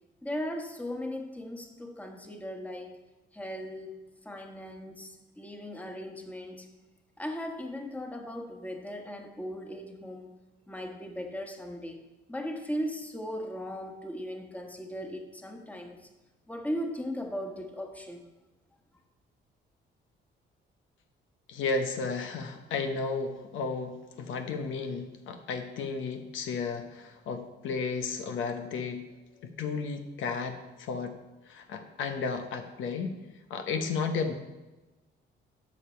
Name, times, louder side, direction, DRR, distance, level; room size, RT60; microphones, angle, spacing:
voice 1, 0.2-3.0 3.3-6.7 7.2-10.4 10.7-12.0 12.3-16.1 16.5-18.2, equal, 5° left, 3 dB, 1.3 m, -38 dB
voice 2, 21.5-29.0 29.4-31.2 31.5-33.1 33.5-34.3, left 4 dB, 80° left, 6 dB, 1.0 m, -33 dB
12.0 x 5.1 x 4.5 m, 1.1 s
cardioid pair, 90°, 20 cm